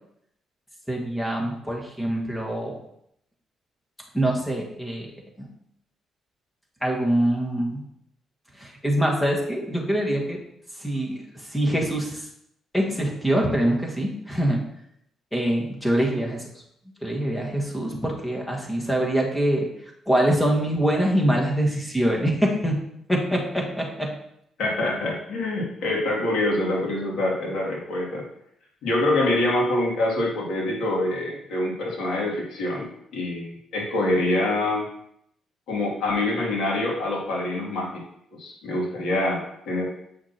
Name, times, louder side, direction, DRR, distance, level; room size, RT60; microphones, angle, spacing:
voice 1, 0.9-2.8 4.1-5.1 5.4-5.5 6.8-7.8 8.6-10.4 10.8-12.3 12.7-14.6 15.3-16.4 17.0-19.7 20.1-22.8 23.1-24.1, right 1 dB, 5° left, -1 dB, 1.7 m, -24 dB
voice 2, 24.6-28.2 28.8-34.9 35.7-38.0 38.4-39.8, left 1 dB, 75° left, -3 dB, 2.6 m, -25 dB
8.4 x 5.9 x 3.0 m, 0.75 s
cardioid pair, 90°, 0 cm